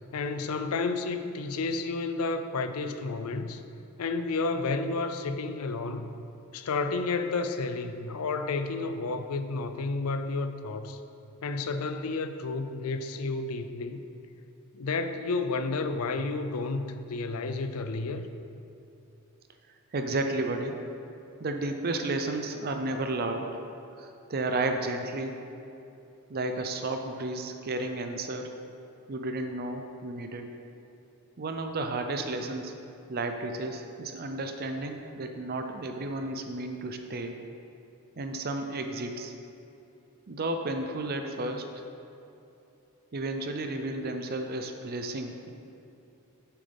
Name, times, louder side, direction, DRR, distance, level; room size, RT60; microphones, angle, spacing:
voice 1, 0.1-3.6 4.0-6.1 6.5-11.0 11.4-14.0 14.7-18.3, left 3 dB, 85° left, 9 dB, 0.5 m, -31 dB
voice 2, 19.9-20.8 21.4-23.6 24.0-25.4 26.3-28.5 29.1-30.5 31.4-32.7 33.1-37.4 38.2-39.3 40.3-41.7 43.1-45.5, right 2 dB, 45° right, 5 dB, 0.5 m, -32 dB
9.1 x 7.5 x 3.5 m, 2.8 s
head